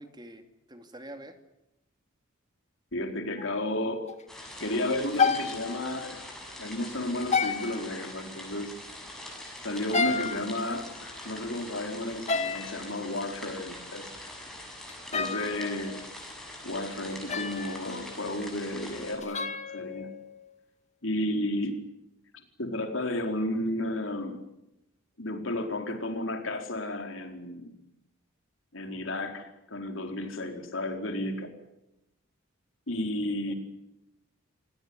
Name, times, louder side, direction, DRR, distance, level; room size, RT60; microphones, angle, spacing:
voice 1, 0.0-1.4 15.2-15.7 33.5-33.6, right 1 dB, 20° right, 7 dB, 2.6 m, -46 dB
voice 2, 2.9-4.1 4.6-6.2 6.6-8.7 9.6-14.0 15.1-16.0 16.6-20.1 21.0-21.8 22.6-24.4 25.2-27.7 28.7-31.5 32.9-33.5, left 1 dB, 70° left, 4 dB, 4.5 m, -32 dB
sound 1, 3.4-3.8 4.1-4.2 5.1-6.2 7.3-8.2 9.8-11.2 12.3-12.9 14.9-16.1 17.3-18.0 19.2-20.5, left 5 dB, 35° left, 2.0 m, -31 dB
sound 2, 4.3-19.1, left 1 dB, ahead, 7.0 m, -43 dB
28.0 x 18.0 x 9.8 m, 0.89 s
head